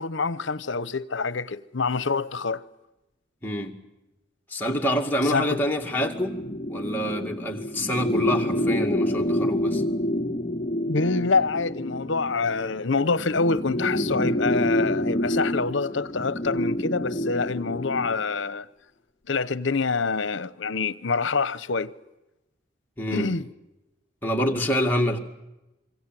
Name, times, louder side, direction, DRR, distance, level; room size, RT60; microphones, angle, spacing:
voice 1, 0.0-2.6 5.2-5.6 10.9-18.7 19.3-21.9 23.1-23.5, left 4 dB, 70° left, 0.9 m, -26 dB
voice 2, 3.4-3.7 4.5-6.3 6.7-9.8 23.0-23.3 24.2-25.2, equal, 10° left, 2.2 m, -26 dB
sound 1, 5.8-18.2, left 1 dB, 30° left, 1.0 m, -28 dB
26.5 x 24.0 x 7.7 m
head